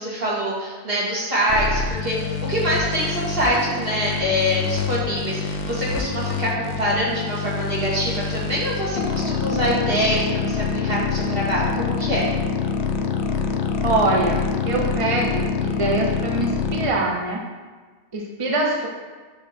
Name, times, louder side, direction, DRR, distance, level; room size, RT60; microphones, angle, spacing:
voice 1, 0.0-12.2, equal, 60° right, -7 dB, 2.4 m, -24 dB
sound 1, 1.5-16.9, left 5 dB, 75° left, 0.9 m, -26 dB
voice 2, 13.8-17.4 18.1-18.9, right 2 dB, 35° right, -1 dB, 0.7 m, -23 dB
8.2 x 3.1 x 5.9 m, 1.4 s
omnidirectional pair, 1.1 m